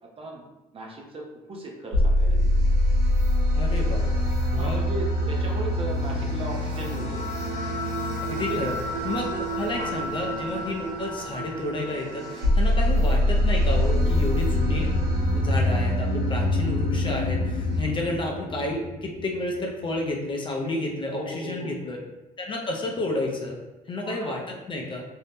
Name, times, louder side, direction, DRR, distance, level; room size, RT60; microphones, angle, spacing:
voice 1, 0.0-0.4 0.7-2.6 4.5-7.2 8.3-8.6 9.0-9.4 9.8-9.9 17.8-18.0 21.1-21.8 24.0-24.4, right 1 dB, 35° right, -1 dB, 0.5 m, -37 dB
sound 1, 1.9-17.8, equal, 80° right, 1.0 m, -25 dB
voice 2, 3.5-4.8 8.4-8.7 9.0-9.3 9.6-15.0 15.3-22.0 22.4-23.6 23.9-25.0, left 2 dB, 30° left, 0 dB, 0.4 m, -31 dB
sound 2, 13.2-19.6 19.9-20.0, left 3 dB, 75° left, 0.7 m, -29 dB
2.6 x 2.0 x 3.3 m, 1.1 s
cardioid pair, 110°, 17 cm